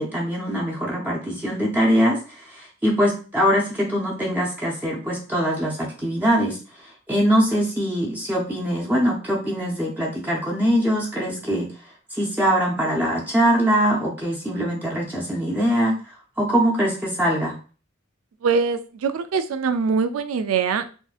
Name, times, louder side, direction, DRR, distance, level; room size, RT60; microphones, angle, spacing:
voice 1, 0.0-6.6 7.1-11.7 12.1-17.6, equal, 10° right, -4 dB, 0.5 m, -22 dB
voice 2, 18.4-20.9, right 5 dB, 80° right, 10 dB, 0.4 m, -23 dB
3.6 x 2.6 x 2.3 m, 0.37 s
head